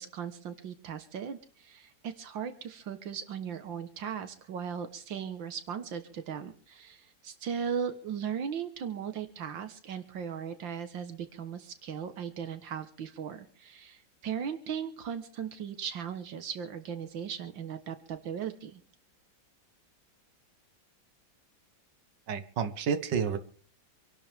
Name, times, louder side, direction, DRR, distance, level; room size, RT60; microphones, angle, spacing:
voice 1, 0.0-18.8, right 7 dB, 85° right, 10 dB, 2.0 m, -37 dB
voice 2, 22.3-23.4, right 6 dB, 70° right, 9 dB, 1.9 m, -30 dB
26.5 x 12.0 x 3.5 m, 0.43 s
omnidirectional pair, 2.0 m